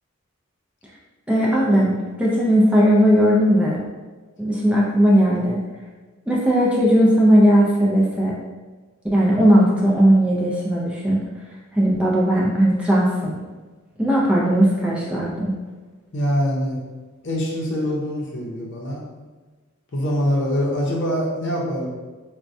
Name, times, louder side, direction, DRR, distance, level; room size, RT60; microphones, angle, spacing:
voice 1, 1.3-3.8 4.4-5.6 6.3-8.4 9.1-11.2 11.7-13.4 14.0-15.5, equal, 5° right, -5 dB, 0.4 m, -17 dB
voice 2, 16.1-16.8 17.2-19.0 19.9-21.9, equal, 55° left, -2 dB, 0.7 m, -24 dB
4.1 x 2.2 x 2.5 m, 1.3 s
head